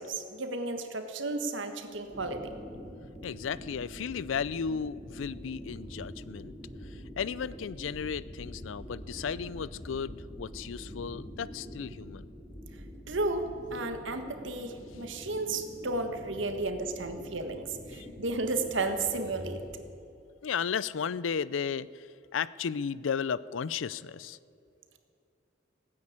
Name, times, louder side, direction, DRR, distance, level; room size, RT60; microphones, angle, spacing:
voice 1, 0.0-2.5 13.1-19.6, right 2 dB, 80° right, 7 dB, 1.5 m, -33 dB
sound 1, 2.1-19.8, equal, 10° left, 4.9 m, -45 dB
voice 2, 3.2-6.5 6.8-12.3 17.9-18.1 20.4-22.1 22.3-24.4, left 6 dB, 85° left, 19 dB, 0.4 m, -34 dB
17.0 x 9.7 x 8.7 m, 2.5 s
head